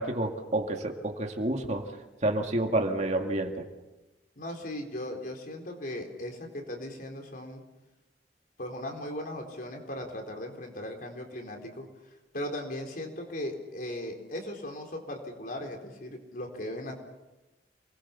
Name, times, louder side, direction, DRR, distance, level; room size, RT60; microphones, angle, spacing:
voice 1, 0.0-1.9 2.2-3.7, right 1 dB, 40° right, 3 dB, 2.2 m, -29 dB
voice 2, 4.4-7.6 8.6-11.9 12.3-16.9, left 1 dB, 50° left, 2 dB, 4.1 m, -38 dB
28.5 x 20.5 x 7.1 m, 1.1 s
head